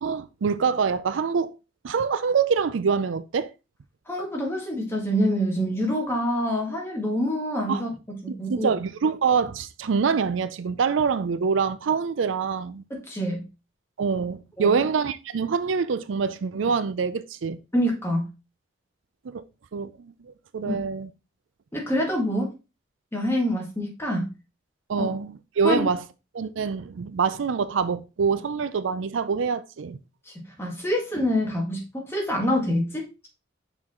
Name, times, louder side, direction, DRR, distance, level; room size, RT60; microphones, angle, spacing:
voice 1, 0.0-1.5 1.8-3.5 7.7-7.8 8.5-12.8 14.0-17.6 19.3-19.4 19.7-20.1 20.5-21.1 24.9-26.0 26.3-30.0, right 5 dB, 80° right, 0.5 m, -25 dB
voice 2, 4.1-8.7 12.9-13.4 14.6-14.8 17.7-18.3 20.7-20.8 21.7-22.5 23.1-24.3 25.0-25.1 25.6-25.9 30.6-33.3, equal, 15° left, 1.9 m, -26 dB
5.8 x 4.6 x 3.7 m
head